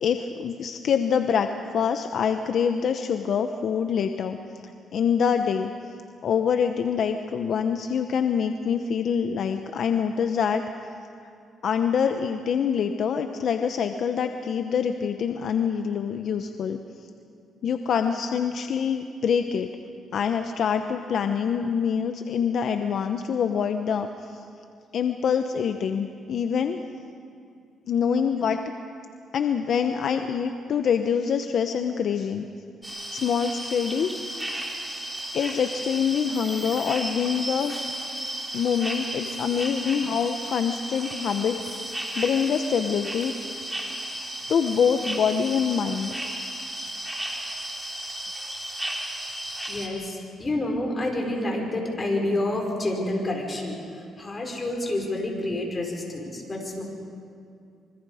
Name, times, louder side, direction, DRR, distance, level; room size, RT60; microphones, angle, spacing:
voice 1, 0.0-1.5 1.7-4.4 4.9-5.7 6.2-10.6 11.6-16.8 17.6-19.7 20.1-24.4 24.9-26.8 27.9-28.6 29.3-32.5 33.1-34.1 35.3-37.7 38.5-41.6 41.9-43.4 44.5-46.1, left 7 dB, 65° left, 7 dB, 0.9 m, -25 dB
sound 1, 32.8-49.9, right 1 dB, 10° right, 3.6 m, -34 dB
voice 2, 49.7-53.8 54.2-56.8, left 1 dB, 30° left, 0 dB, 5.4 m, -28 dB
26.0 x 24.5 x 5.0 m, 2.4 s
cardioid pair, 90°, 0 cm